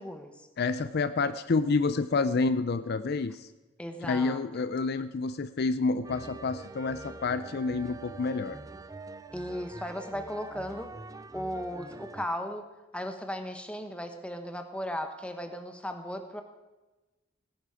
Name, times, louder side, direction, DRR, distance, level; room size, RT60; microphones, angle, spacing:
voice 1, 0.0-0.5 3.8-4.7 9.3-10.9 11.3-12.7 12.9-16.4, equal, 5° left, 6 dB, 1.2 m, -36 dB
voice 2, 0.6-3.5 4.0-8.6, left 4 dB, 50° left, 12 dB, 0.5 m, -28 dB
sound 1, 6.0-12.3, right 3 dB, 15° right, 0.4 m, -44 dB
18.0 x 10.5 x 4.9 m, 1.1 s
head